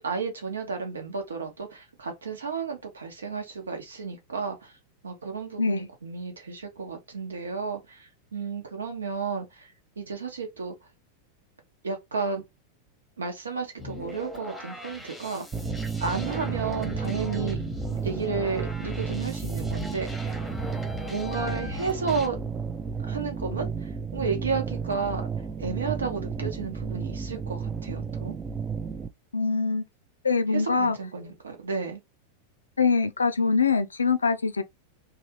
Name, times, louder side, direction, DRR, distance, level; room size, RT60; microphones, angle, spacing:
voice 1, 0.0-4.7 5.0-9.7 10.0-10.7 11.8-12.4 13.2-15.5 16.0-17.6 18.0-20.3 21.1-22.4 23.0-25.3 25.6-28.4 30.5-32.0, right 5 dB, 70° right, 1.0 m, -32 dB
sound 1, 13.8-22.3, left 2 dB, 5° left, 0.9 m, -39 dB
sound 2, 15.5-29.1, right 5 dB, 20° right, 0.4 m, -32 dB
voice 2, 29.3-29.8 30.2-31.0 32.8-34.6, left 4 dB, 75° left, 0.4 m, -23 dB
3.2 x 2.4 x 2.8 m
figure-of-eight pair, 90°, 0 cm